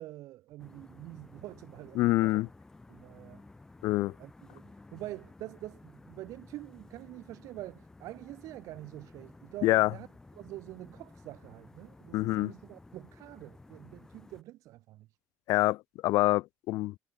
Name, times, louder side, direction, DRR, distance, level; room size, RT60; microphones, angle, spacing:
voice 1, 0.0-2.4 2.9-3.4 4.2-10.1 10.4-15.1, right 16 dB, 70° right, 1.1 m, -46 dB
sound 1, 0.6-14.4, left 2 dB, 10° left, 1.8 m, -54 dB
voice 2, 2.0-2.5 3.8-4.1 9.6-9.9 12.1-12.5 15.5-16.9, left 18 dB, 75° left, 0.5 m, -26 dB
cardioid pair, 175°, 6 cm